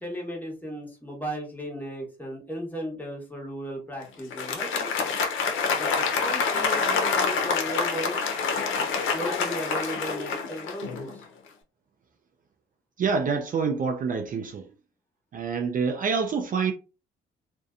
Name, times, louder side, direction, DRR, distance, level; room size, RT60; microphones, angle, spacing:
voice 1, 0.0-4.9 5.7-8.2 9.1-11.2, equal, 10° left, 1.1 m, -36 dB
Applause, 4.2-11.2, left 5 dB, 80° left, 0.6 m, -27 dB
voice 2, 13.0-14.7 15.3-16.7, right 5 dB, 45° right, 0.4 m, -26 dB
2.6 x 2.2 x 2.4 m
cardioid pair, 90°, 20 cm